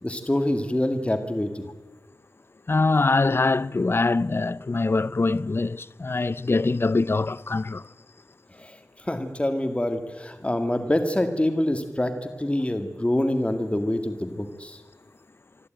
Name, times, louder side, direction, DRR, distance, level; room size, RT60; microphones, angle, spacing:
voice 1, 0.0-1.7 8.6-14.8, left 1 dB, 20° left, 2.0 m, -26 dB
voice 2, 2.7-7.8, left 3 dB, 45° left, 0.5 m, -23 dB
26.0 x 12.0 x 9.0 m
wide cardioid pair, 50°, 6 cm